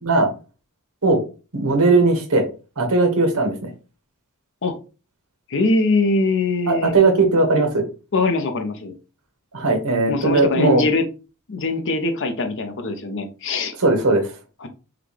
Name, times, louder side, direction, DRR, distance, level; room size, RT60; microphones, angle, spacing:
voice 1, 1.5-2.4 2.8-3.7 6.7-7.8 9.5-10.8 13.8-14.3, right 3 dB, 75° right, 5 dB, 1.2 m, -18 dB
voice 2, 5.5-7.0 8.1-8.9 10.1-11.0 11.5-13.7 14.6-14.7, left 3 dB, 60° left, 6 dB, 0.8 m, -22 dB
5.8 x 2.4 x 3.3 m, 0.33 s
head